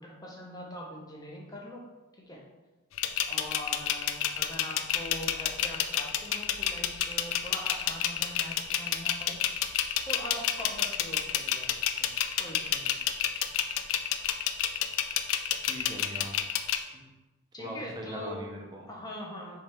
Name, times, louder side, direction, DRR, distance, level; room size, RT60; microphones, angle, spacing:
voice 1, 0.0-1.8 2.1-2.4 3.3-9.4 10.1-11.7 12.0-12.1 12.4-13.0 17.5-18.4 18.9-19.6, left 1 dB, 20° left, -2 dB, 0.7 m, -42 dB
sound 1, 3.0-16.8, left 10 dB, 80° left, 0.3 m, -29 dB
voice 2, 15.6-16.4 16.9-17.1 17.6-18.8, right 1 dB, 20° right, 0 dB, 0.6 m, -41 dB
3.6 x 3.2 x 4.3 m, 1.1 s
head